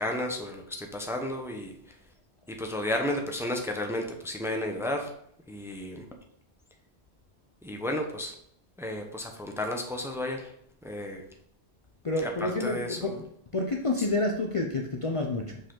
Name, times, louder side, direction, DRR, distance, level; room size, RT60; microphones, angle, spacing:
voice 1, 0.0-2.0 2.5-5.1 5.5-6.0 7.6-8.3 8.8-10.5 10.8-11.2 12.2-13.2, left 1 dB, 5° right, 3 dB, 0.8 m, -33 dB
voice 2, 12.0-13.3 13.5-15.6, left 2 dB, 35° left, 1 dB, 0.6 m, -29 dB
6.4 x 5.2 x 3.8 m, 0.70 s
omnidirectional pair, 1.1 m